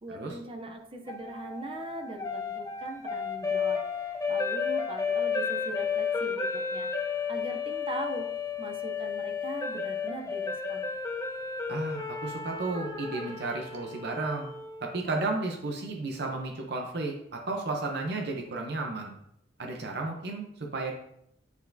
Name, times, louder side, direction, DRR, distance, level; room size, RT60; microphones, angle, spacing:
voice 1, 0.0-8.3 8.6-10.9, right 1 dB, 30° right, 4 dB, 0.6 m, -41 dB
sound 1, 1.1-15.2, left 5 dB, 20° left, 0.5 m, -33 dB
voice 2, 11.7-14.5 14.8-19.2 19.6-20.9, right 3 dB, 65° right, 1 dB, 0.7 m, -33 dB
8.1 x 4.5 x 2.7 m, 0.76 s
head